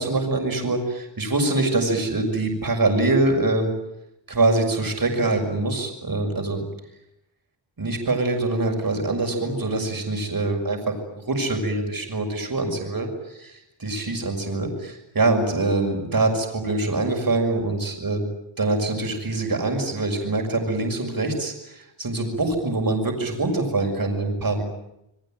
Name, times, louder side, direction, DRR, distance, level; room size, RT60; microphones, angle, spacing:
voice 1, 0.0-3.7 4.3-6.6 7.8-18.3 18.6-24.6, right 2 dB, 50° right, 2 dB, 6.4 m, -24 dB
28.5 x 22.0 x 9.1 m, 0.86 s
wide cardioid pair, 100°, 46 cm